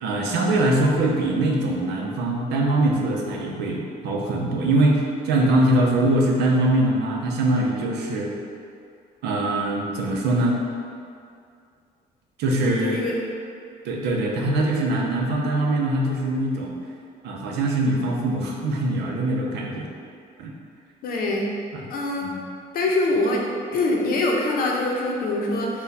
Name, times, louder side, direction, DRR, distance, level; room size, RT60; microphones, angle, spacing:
voice 1, 0.0-8.3 9.2-10.6 12.4-13.0 13.8-16.7 17.2-19.9 20.4-20.5 21.7-21.8 22.2-22.5, right 1 dB, 80° right, 0 dB, 0.6 m, -22 dB
voice 2, 12.8-13.1 21.0-21.5 21.9-22.3 22.7-23.4 23.7-25.8, left 2 dB, 60° left, -1 dB, 0.7 m, -24 dB
4.2 x 2.3 x 4.0 m, 2.4 s
cardioid pair, 110°, 17 cm